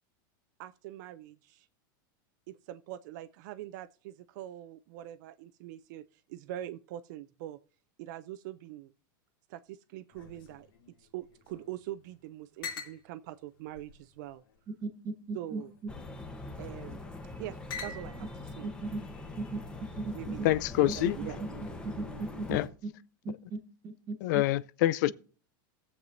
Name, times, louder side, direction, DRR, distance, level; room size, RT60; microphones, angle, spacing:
voice 1, 0.6-1.7 2.5-6.0 6.3-7.6 8.0-8.9 9.5-10.7 11.0-14.4 15.3-15.7 16.6-18.3 18.6-18.7 20.1-21.4, right 13 dB, 55° right, 0.5 m, -43 dB
sound 1, 10.1-11.8 12.0-12.1 12.6-13.0 13.7-14.6 15.4-15.8 16.8-17.2 17.7-18.4, left 5 dB, 85° left, 2.8 m, -45 dB
voice 2, 14.7-15.9 18.6-19.0 19.4-19.6 20.0-20.5 21.0-22.9 23.2-24.4, right 3 dB, 30° right, 1.4 m, -38 dB
sound 2, 15.9-22.7, left 2 dB, 10° left, 1.0 m, -42 dB
voice 3, 20.4-21.2 22.5-22.7 24.2-25.1, left 15 dB, 55° left, 0.4 m, -26 dB
20.0 x 7.3 x 2.6 m
supercardioid pair, 155°, 12 cm